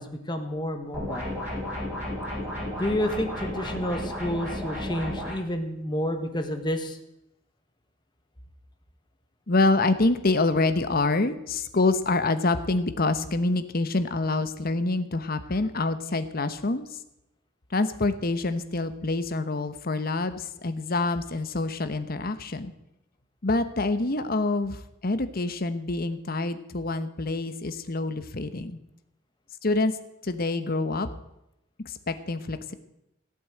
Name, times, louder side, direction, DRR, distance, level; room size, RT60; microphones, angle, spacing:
voice 1, 0.0-1.3 2.8-7.0, equal, 25° left, 6 dB, 1.6 m, -30 dB
sound 1, 0.9-5.3, left 1 dB, 10° right, 6.4 m, -33 dB
voice 2, 9.5-16.9 17.7-22.7 23.4-28.8 29.6-29.9 30.2-31.1 31.8-32.7, left 2 dB, 50° left, 10 dB, 1.1 m, -26 dB
15.5 x 8.6 x 7.8 m, 0.85 s
head